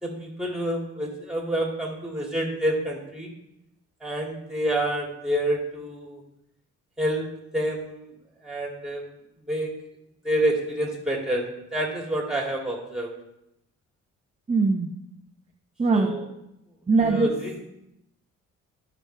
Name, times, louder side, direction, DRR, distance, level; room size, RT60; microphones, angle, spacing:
voice 1, 0.0-3.3 4.0-6.2 7.0-7.3 7.5-8.1 8.4-9.0 9.5-9.7 10.2-11.5 11.7-13.1 15.9-16.2 17.0-17.6, right 1 dB, ahead, -1 dB, 2.5 m, -27 dB
voice 2, 14.5-14.9 15.8-16.1 16.9-17.3, right 4 dB, 20° right, 2 dB, 0.8 m, -21 dB
12.5 x 6.1 x 3.4 m, 0.84 s
cardioid pair, 90°, 30 cm